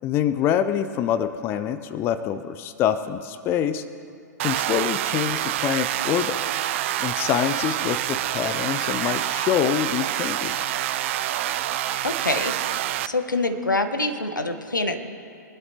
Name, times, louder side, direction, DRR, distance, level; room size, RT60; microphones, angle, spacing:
voice 1, 0.0-3.8 4.4-6.4 7.0-10.6, left 9 dB, 25° left, 12 dB, 0.4 m, -25 dB
sound 1, 4.4-13.1, right 14 dB, 40° right, 0.4 m, -27 dB
sound 2, 5.1-12.0, right 3 dB, 10° right, 3.8 m, -40 dB
voice 2, 12.0-12.5 13.0-15.0, left 2 dB, 85° left, 7 dB, 1.1 m, -25 dB
23.5 x 12.0 x 2.8 m, 2.5 s
figure-of-eight pair, 110°, 10 cm